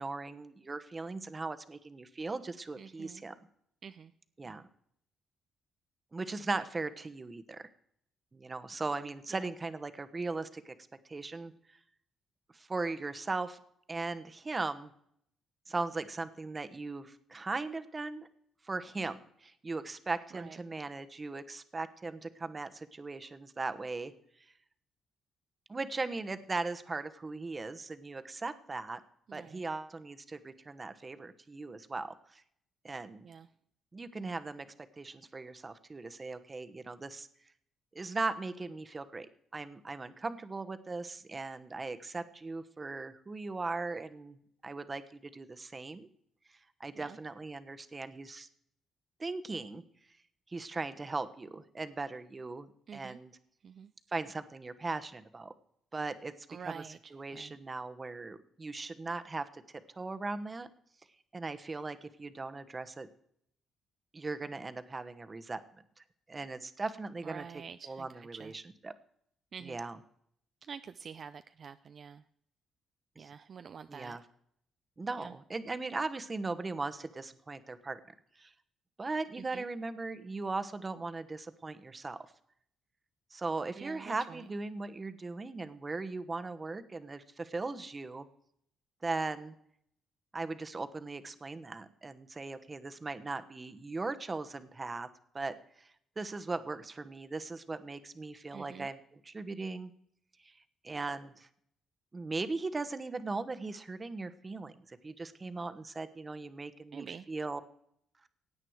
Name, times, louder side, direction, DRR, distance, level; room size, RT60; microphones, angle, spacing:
voice 1, 0.0-3.3 4.4-4.6 6.1-7.6 8.3-10.7 11.1-11.5 12.5-13.6 13.9-14.9 15.7-18.3 18.6-24.1 25.7-29.0 29.3-32.4 32.8-33.3 33.9-37.3 37.9-39.3 39.5-44.4 44.6-46.1 46.8-48.5 49.2-49.8 50.5-53.3 54.1-55.5 55.9-56.3 56.6-56.8 57.1-60.7 61.3-63.1 64.1-65.6 66.3-67.5 67.8-68.9 69.6-70.0 73.2-73.3 73.9-74.2 75.0-78.0 78.4-78.5 79.0-82.2 83.3-88.3 89.0-89.5 90.3-95.1 95.3-95.9 96.2-99.9 100.4-100.5 100.8-101.5 102.1-107.6, right 3 dB, 25° right, 11 dB, 1.1 m, -38 dB
voice 2, 2.8-3.2 3.8-4.1 4.4-4.6 9.0-9.5 20.3-20.6 29.3-29.7 33.2-33.5 47.0-47.2 52.9-53.2 53.6-53.9 56.5-57.6 67.2-68.5 69.5-69.8 70.7-72.2 73.2-74.2 75.2-75.3 79.4-79.7 83.7-84.4 98.5-98.9 106.9-107.3, right 6 dB, 50° right, 11 dB, 0.5 m, -47 dB
16.5 x 8.9 x 4.7 m, 0.69 s
cardioid pair, 90°, 0 cm